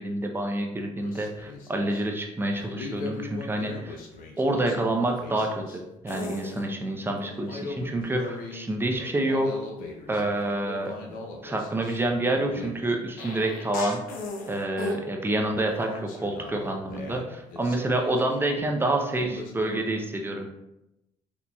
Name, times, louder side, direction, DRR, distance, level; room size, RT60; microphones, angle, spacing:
voice 1, 0.0-4.0 4.4-9.5 10.1-11.2 11.4-14.0 14.5-20.5, right 1 dB, 15° right, 2 dB, 0.6 m, -28 dB
sound 1, 1.0-2.0 2.5-5.8 6.1-6.6 7.2-8.7 8.9-15.0 15.5-18.8 19.2-19.8, left 3 dB, 75° left, 0.6 m, -39 dB
3.9 x 2.9 x 2.3 m, 0.91 s
supercardioid pair, 75°, 15 cm